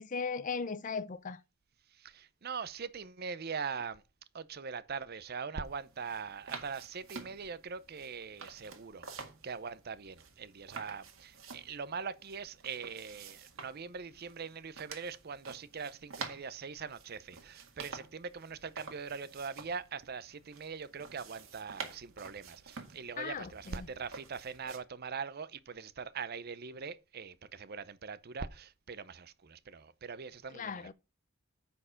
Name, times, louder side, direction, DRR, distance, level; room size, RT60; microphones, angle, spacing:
voice 1, 0.0-1.4 23.2-23.9 30.5-30.9, left 5 dB, 40° left, 0.5 m, -37 dB
voice 2, 1.9-4.0 4.3-30.9, right 5 dB, 50° right, 0.6 m, -42 dB
sound 1, 5.6-24.8, right 5 dB, 75° right, 1.8 m, -49 dB
9.5 x 4.4 x 5.6 m
head